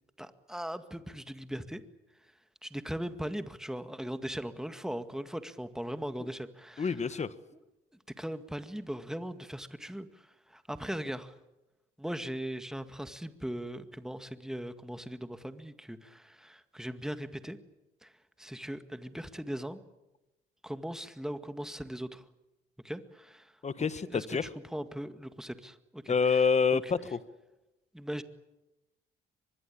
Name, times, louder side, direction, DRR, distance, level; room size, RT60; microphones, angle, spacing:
voice 1, 0.2-1.8 2.6-7.0 8.2-11.3 12.0-17.6 18.0-18.1 18.4-19.8 20.6-22.3 22.8-23.5 24.0-26.5 26.8-26.9 27.9-28.2, equal, 5° right, 10 dB, 2.0 m, -39 dB
voice 2, 6.8-7.3 23.6-24.4 26.1-27.2, left 5 dB, 35° left, 14 dB, 1.6 m, -27 dB
24.5 x 21.5 x 8.9 m, 1.0 s
cardioid pair, 90°, 20 cm